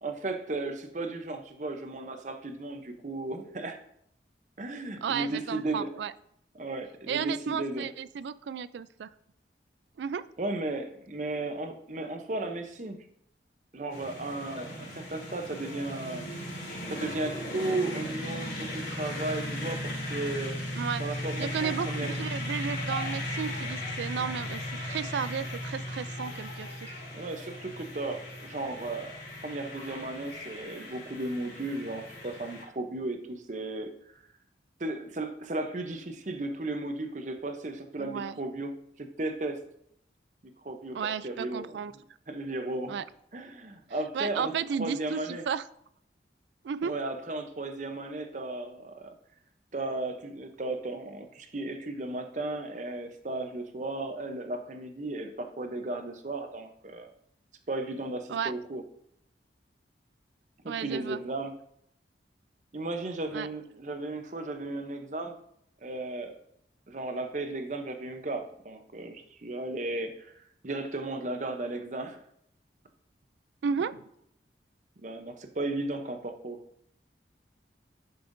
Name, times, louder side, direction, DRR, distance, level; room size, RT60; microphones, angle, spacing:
voice 1, 0.0-3.8 4.6-5.9 6.5-7.9 10.4-13.0 13.7-16.3 16.9-20.6 21.0-22.2 27.1-33.9 34.8-38.7 39.0-39.6 40.6-41.0 41.2-41.8 42.3-42.9 43.3-44.5 44.8-45.4 46.8-49.1 49.7-57.1 57.7-58.8 60.6-61.5 62.7-65.4 65.8-66.4 66.9-72.2 75.0-76.6, right 2 dB, 40° right, 6 dB, 0.7 m, -35 dB
voice 2, 5.0-6.1 7.1-9.1 10.0-10.3 20.8-21.0 21.4-26.9 38.0-38.4 40.9-41.9 42.9-43.0 44.1-45.6 46.6-46.9 58.3-58.5 60.7-61.2 63.3-63.5 73.6-74.0, right 7 dB, 75° right, 16 dB, 0.3 m, -33 dB
sound 1, 13.9-32.6, left 1 dB, 65° left, 3.0 m, -37 dB
10.5 x 5.5 x 2.6 m, 0.72 s
head